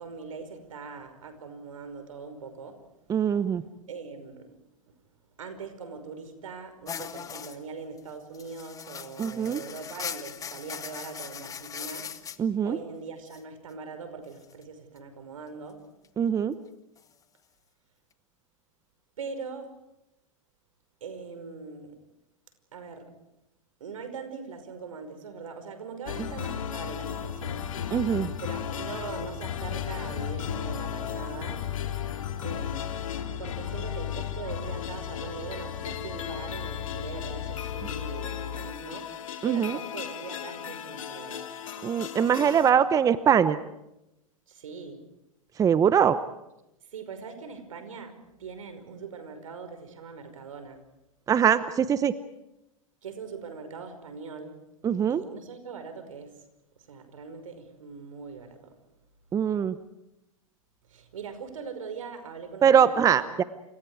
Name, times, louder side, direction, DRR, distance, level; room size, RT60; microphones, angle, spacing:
voice 1, 0.0-2.8 3.2-3.4 3.9-4.6 5.4-12.1 12.6-15.8 19.2-19.7 21.0-22.0 22.7-23.1 23.8-28.0 28.4-31.6 32.4-32.9 33.4-39.1 39.4-41.5 42.2-42.8 44.5-45.0 46.9-50.8 53.0-54.6 55.1-56.4 56.8-58.7 60.9-63.4, right 5 dB, 75° right, 8 dB, 5.4 m, -41 dB
voice 2, 3.1-3.6 9.2-9.6 12.4-12.8 16.2-16.5 27.9-28.3 39.4-39.8 41.8-43.6 45.6-46.2 51.3-52.1 54.8-55.2 59.3-59.7 62.6-63.4, right 8 dB, 20° right, 14 dB, 0.9 m, -22 dB
sound 1, 6.9-7.6 8.0-8.1 8.3-12.4 13.3-13.4 14.4-14.6 17.0-17.1, left 7 dB, 20° left, 1.4 m, -39 dB
sound 2, 26.1-42.7, left 9 dB, 70° left, 2.6 m, -35 dB
sound 3, 28.0-38.1, left 6 dB, 40° left, 2.7 m, -45 dB
29.0 x 28.0 x 4.9 m, 0.89 s
hypercardioid pair, 105°, 17 cm